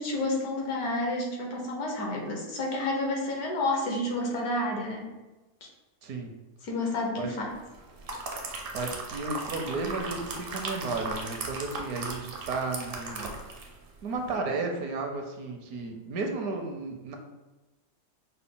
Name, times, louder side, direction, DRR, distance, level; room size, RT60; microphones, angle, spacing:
voice 1, 0.0-5.1 5.6-5.7 6.6-7.6, left 2 dB, 75° left, -1 dB, 1.4 m, -30 dB
voice 2, 6.0-6.3 7.2-7.3 8.7-13.3 14.0-17.2, right 3 dB, 75° right, 3 dB, 1.1 m, -33 dB
sound 1, 7.7-13.8 14.1-14.3, right 3 dB, 60° right, 0.6 m, -37 dB
5.6 x 2.2 x 3.6 m, 1.1 s
omnidirectional pair, 1.7 m